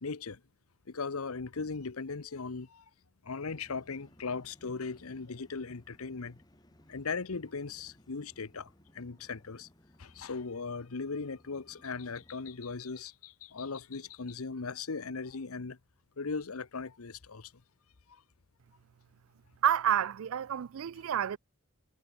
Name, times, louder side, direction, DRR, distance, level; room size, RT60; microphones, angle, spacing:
voice 1, 0.0-0.4 0.9-2.8 3.3-6.4 6.9-8.7 9.0-9.7 10.0-15.8 16.2-17.4, left 4 dB, 90° left, 0.9 m, -38 dB
sound 1, 3.4-12.6, equal, 20° left, 2.3 m, -62 dB
voice 2, 19.6-21.4, right 9 dB, 75° right, 0.4 m, -29 dB
head